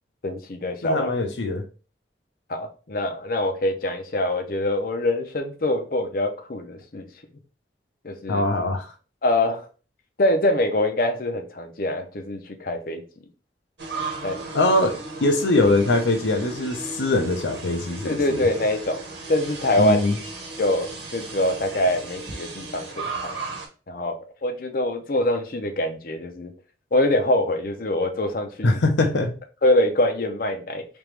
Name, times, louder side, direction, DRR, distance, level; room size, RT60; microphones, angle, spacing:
voice 1, 0.2-1.1 2.5-7.1 8.0-8.5 9.2-9.7 10.2-13.0 14.2-14.5 18.0-19.0 19.3-20.0 20.6-23.3 23.9-26.5 26.9-28.8 29.6-30.8, left 1 dB, 50° left, 0.6 m, -24 dB
voice 2, 0.8-1.6 8.3-8.9 14.5-18.4 19.8-20.2 28.6-29.3, left 2 dB, 85° left, 0.7 m, -22 dB
sound 1, 13.8-23.7, right 3 dB, 75° right, 1.0 m, -35 dB
3.5 x 3.0 x 3.2 m
head